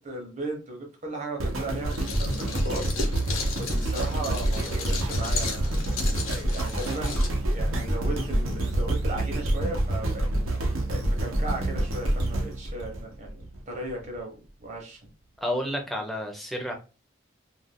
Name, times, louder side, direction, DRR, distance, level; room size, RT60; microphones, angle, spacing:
voice 1, 0.0-3.2 3.6-5.8 6.5-10.3 10.9-15.0, right 2 dB, 35° right, 1 dB, 0.8 m, -36 dB
sound 1, 1.4-13.6 14.1-14.2, right 1 dB, 85° right, 0.8 m, -27 dB
sound 2, 1.9-7.3, left 4 dB, 80° left, 0.8 m, -35 dB
voice 2, 15.4-16.7, equal, ahead, 2 dB, 0.5 m, -30 dB
2.5 x 2.3 x 3.4 m, 0.33 s
head